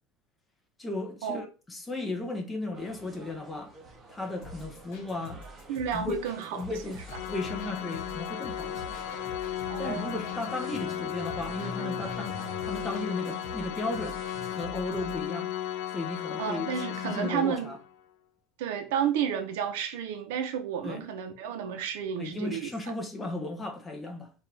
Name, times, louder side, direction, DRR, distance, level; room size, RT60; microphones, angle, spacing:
voice 1, 0.8-3.7 4.1-5.4 5.9-6.2 6.5-7.0 7.3-8.9 9.8-12.4 12.6-14.2 14.5-15.5 15.9-16.7 17.0-17.8 20.8-21.0 22.2-24.3, left 2 dB, 10° left, 0.8 m, -35 dB
sound 1, 2.7-14.5, right 1 dB, 20° right, 0.9 m, -47 dB
sound 2, 4.4-15.3, left 2 dB, 55° left, 1.6 m, -47 dB
voice 2, 5.7-6.6 9.7-10.1 16.4-17.7 18.6-22.7, right 8 dB, 85° right, 0.8 m, -31 dB
Organ, 7.1-17.9, left 11 dB, 90° left, 0.5 m, -35 dB
5.2 x 2.6 x 3.4 m
cardioid pair, 165°, 0 cm